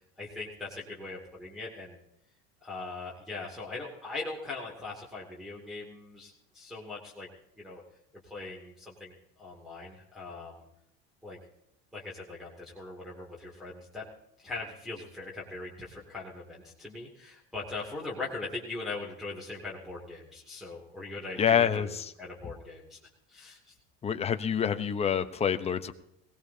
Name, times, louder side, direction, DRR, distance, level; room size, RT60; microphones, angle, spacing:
voice 1, 0.2-2.0 2.6-7.3 7.6-7.8 8.2-10.6 11.2-11.4 11.9-14.0 14.4-21.9 22.2-23.0 23.3-23.6, left 3 dB, ahead, -6 dB, 2.5 m, -40 dB
voice 2, 21.4-22.1 24.0-25.9, left 8 dB, 20° left, 8 dB, 0.9 m, -27 dB
21.0 x 18.0 x 2.8 m, 0.81 s
cardioid pair, 145°, 33 cm